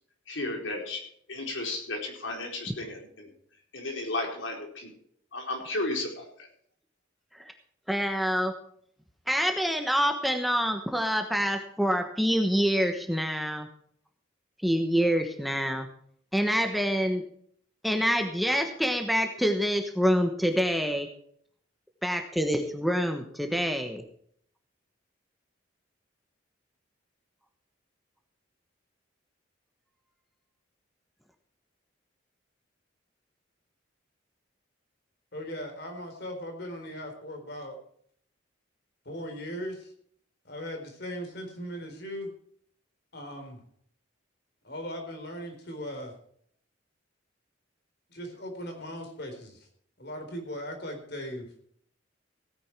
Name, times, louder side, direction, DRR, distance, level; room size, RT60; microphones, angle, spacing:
voice 1, 0.3-1.0 1.3-3.3 3.7-4.9 5.3-6.2, left 2 dB, 80° left, 1 dB, 4.5 m, -33 dB
voice 2, 7.9-8.5 9.3-13.7 14.6-15.9 16.3-17.2 17.8-21.1 22.0-24.0, equal, ahead, 4 dB, 1.2 m, -26 dB
voice 3, 35.3-37.8 39.0-39.9 40.4-42.3 43.1-43.6 44.6-46.1 48.1-49.7 50.0-51.6, equal, 55° left, 4 dB, 4.2 m, -38 dB
17.0 x 9.8 x 4.6 m, 0.63 s
head